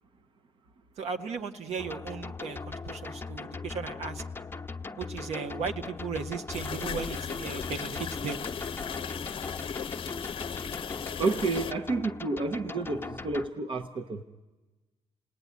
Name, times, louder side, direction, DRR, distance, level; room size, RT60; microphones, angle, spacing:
voice 1, 1.0-4.2 5.0-8.4, right 5 dB, 70° right, 6 dB, 1.5 m, -36 dB
sound 1, 1.8-13.5, left 4 dB, 20° left, 1.0 m, -39 dB
sound 2, 6.5-11.7, left 7 dB, 50° left, 0.8 m, -37 dB
voice 2, 11.2-14.2, right 3 dB, 50° right, 8 dB, 1.0 m, -30 dB
29.0 x 19.0 x 9.6 m, 1.2 s
cardioid pair, 85°, 11 cm